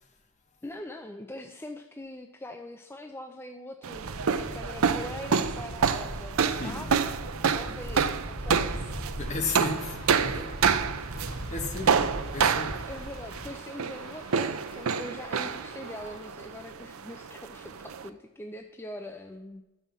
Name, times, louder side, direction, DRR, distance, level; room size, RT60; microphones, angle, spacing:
voice 1, 0.6-7.2 7.5-9.1 12.9-19.6, left 1 dB, 10° left, 0.5 m, -42 dB
sound 1, 3.8-18.1, right 6 dB, 75° right, 0.5 m, -28 dB
sound 2, 3.9-13.5, equal, 45° right, 1.5 m, -39 dB
sound 3, 9.2-16.2, left 2 dB, 65° left, 3.1 m, -51 dB
voice 2, 9.2-10.5 11.2-12.8, left 3 dB, 35° left, 1.3 m, -35 dB
12.0 x 5.6 x 7.3 m
head